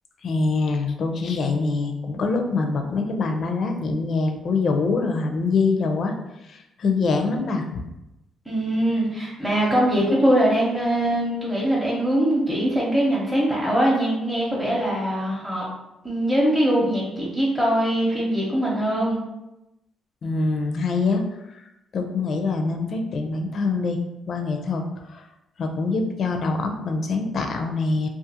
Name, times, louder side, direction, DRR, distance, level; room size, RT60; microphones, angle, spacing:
voice 1, 0.2-6.1 6.4-7.8 20.2-21.2 21.5-21.6 21.9-24.0 24.3-24.8 25.1-25.2 25.6-28.1, left 3 dB, 55° left, 4 dB, 0.4 m, -24 dB
voice 2, 8.5-15.6 16.0-19.2, right 1 dB, 5° right, -6 dB, 0.7 m, -22 dB
2.4 x 2.4 x 2.7 m, 0.92 s
cardioid pair, 90°, 0 cm